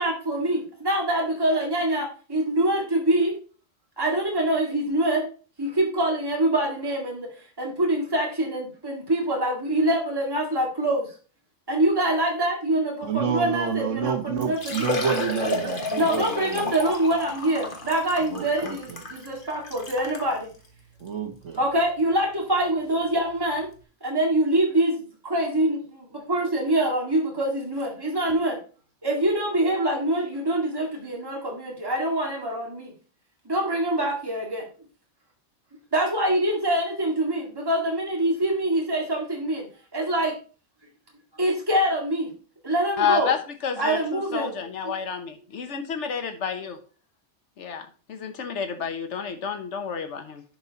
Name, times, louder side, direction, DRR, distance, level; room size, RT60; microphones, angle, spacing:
voice 1, 0.0-3.4 4.0-5.3 5.6-7.3 7.6-11.1 11.7-14.9 16.0-20.5 21.6-23.7 24.0-28.6 29.0-32.9 33.5-34.6 35.9-39.7 39.9-40.4 41.4-42.3 42.6-43.3 43.8-44.5, right 1 dB, 20° right, -1 dB, 2.1 m, -25 dB
voice 2, 13.0-16.7 18.3-18.7 21.0-21.6, right 7 dB, 80° right, 6 dB, 1.5 m, -29 dB
Liquid, 14.0-14.1 14.4-20.3 21.0-21.1 21.5-21.6 23.3-23.4 23.5-23.6, left 2 dB, 45° left, 1.5 m, -32 dB
voice 3, 43.0-43.4 43.6-46.7 47.6-50.4, left 7 dB, 75° left, 8 dB, 1.4 m, -29 dB
10.5 x 4.8 x 4.1 m, 0.38 s
omnidirectional pair, 1.2 m